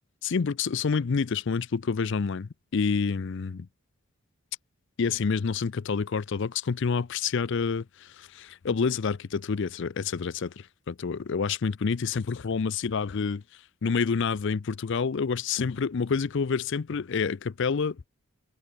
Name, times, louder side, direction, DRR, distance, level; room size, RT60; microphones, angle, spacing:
voice 1, 0.2-3.7 5.0-10.5 10.9-13.4 13.8-18.1, left 5 dB, 55° left, 0.5 m, -28 dB
head